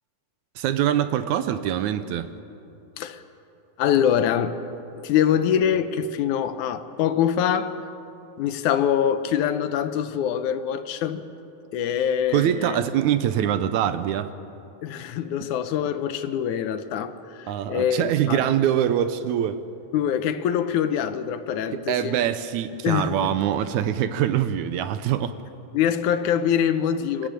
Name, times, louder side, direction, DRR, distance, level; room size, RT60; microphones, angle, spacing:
voice 1, 0.6-2.3 12.3-14.3 17.5-19.6 21.7-25.4, right 10 dB, 75° right, 12 dB, 2.0 m, -24 dB
voice 2, 3.8-4.6 4.9-7.8 8.4-11.3 11.7-12.8 14.8-18.4 19.9-22.2 22.8-23.4 25.7-27.3, left 9 dB, 75° left, 10 dB, 2.2 m, -24 dB
27.0 x 13.5 x 9.1 m, 2.8 s
omnidirectional pair, 3.6 m